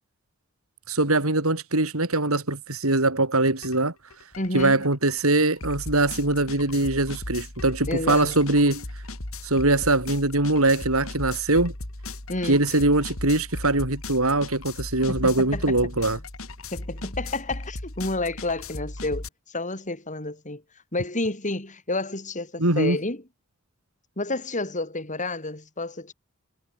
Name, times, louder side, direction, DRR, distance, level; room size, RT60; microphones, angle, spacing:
voice 1, 0.9-3.9 4.5-8.8 9.4-11.7 12.4-16.2 22.6-23.0, right 2 dB, 85° right, 4.6 m, -22 dB
sound 1, 3.6-3.8 4.1-19.3, left 2 dB, 75° left, 3.5 m, -37 dB
voice 2, 4.4-4.8 7.9-8.4 12.3-12.6 15.1-16.2 16.7-20.6 20.9-23.2 24.2-26.1, left 2 dB, 35° left, 6.8 m, -30 dB
head